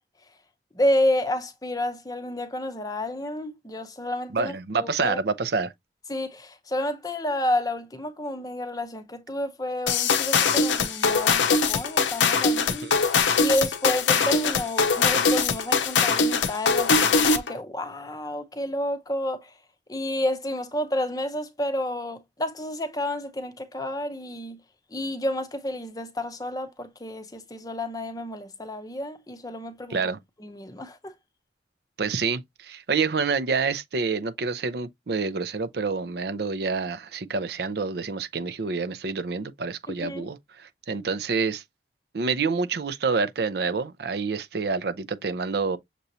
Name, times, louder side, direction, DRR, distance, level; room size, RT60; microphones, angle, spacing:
voice 1, 0.7-5.2 6.1-12.9 13.4-19.5 19.9-24.6 24.9-30.0 30.4-31.1 39.9-40.3, left 1 dB, 20° left, 0.6 m, -30 dB
voice 2, 4.3-5.7 12.8-13.0 29.9-30.2 32.0-41.6 42.1-45.8, right 4 dB, 60° right, 0.5 m, -27 dB
sound 1, 9.9-17.5, left 5 dB, 85° left, 0.7 m, -22 dB
6.7 x 3.0 x 2.6 m
head